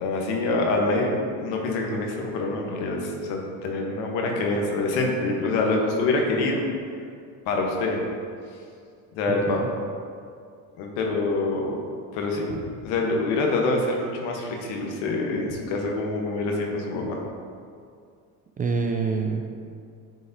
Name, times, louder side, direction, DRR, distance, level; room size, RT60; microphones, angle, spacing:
voice 1, 0.0-6.6 7.5-8.0 9.1-9.6 10.8-11.8 12.1-17.2, left 2 dB, 75° left, 1 dB, 1.1 m, -26 dB
voice 2, 18.6-19.5, right 4 dB, 20° right, 3 dB, 0.4 m, -26 dB
9.0 x 3.8 x 2.7 m, 2.3 s
supercardioid pair, 95°, 41 cm